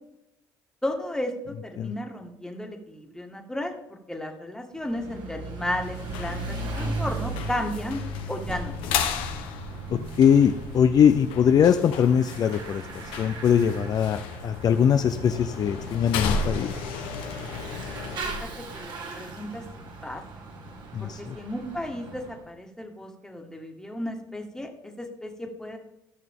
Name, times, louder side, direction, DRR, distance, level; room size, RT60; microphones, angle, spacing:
voice 1, 0.8-8.0 8.3-8.7 18.2-18.5 18.7-19.6 20.0-20.2 21.0-25.8, left 1 dB, 5° left, 3 dB, 1.8 m, -34 dB
Bicycle / Mechanisms, 4.8-22.4, right 2 dB, 60° right, 2.0 m, -38 dB
sound 1, 5.8-18.2, left 5 dB, 80° left, 1.0 m, -34 dB
voice 2, 9.9-12.8 13.2-16.7 20.9-21.4, left 8 dB, 45° left, 8 dB, 0.5 m, -21 dB
14.0 x 5.9 x 3.7 m, 0.88 s
supercardioid pair, 75°, 9 cm